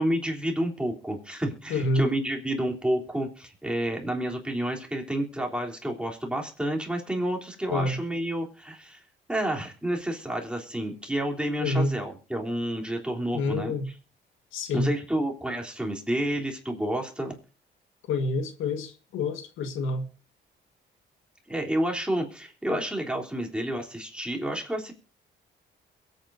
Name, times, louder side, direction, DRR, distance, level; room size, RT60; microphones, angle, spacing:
voice 1, 0.0-9.0 9.3-13.7 14.7-17.3 21.5-24.9, right 1 dB, 5° right, 3.5 m, -30 dB
voice 2, 1.7-2.1 7.7-8.0 11.6-12.0 13.3-13.9 14.5-14.9 18.1-20.0 22.7-22.8, left 2 dB, 90° left, 1.7 m, -27 dB
22.5 x 9.0 x 2.7 m
cardioid pair, 90°, 20 cm